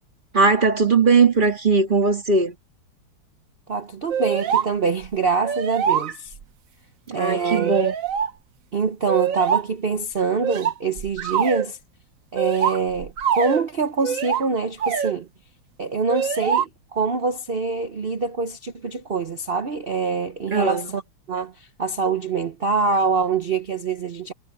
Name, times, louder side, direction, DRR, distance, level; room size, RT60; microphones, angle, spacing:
voice 1, 0.3-2.6 7.1-7.9 20.5-20.9, right 4 dB, 25° right, 1.8 m, -19 dB
voice 2, 3.7-6.3 7.1-7.7 8.7-11.8 12.3-15.3 15.8-21.0 21.3-24.3, right 4 dB, 75° right, 0.5 m, -25 dB
sound 1, 4.1-4.7 5.0-5.1 5.4-6.4 7.3-8.3 9.1-9.7 10.4-11.7 12.4-13.7 14.0-14.4 14.8-15.1 16.1-16.7, right 8 dB, 50° right, 1.1 m, -24 dB
omnidirectional pair, 2.3 m